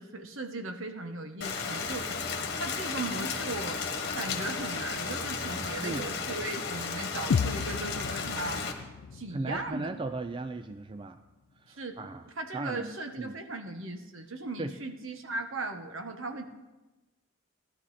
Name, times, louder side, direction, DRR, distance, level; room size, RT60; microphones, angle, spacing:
voice 1, 0.0-2.1 2.5-3.8 4.1-8.6 9.1-9.9 11.8-11.9 12.2-16.5, right 2 dB, 65° right, 6 dB, 1.2 m, -37 dB
Rain, 1.4-8.7, left 5 dB, 50° left, 1.6 m, -34 dB
sound 1, 7.3-11.3, left 6 dB, 75° left, 0.4 m, -34 dB
voice 2, 9.3-11.2 11.6-12.2 12.5-13.4 14.6-14.7, right 2 dB, 25° right, 9 dB, 0.3 m, -37 dB
17.0 x 11.5 x 4.2 m, 1.1 s
head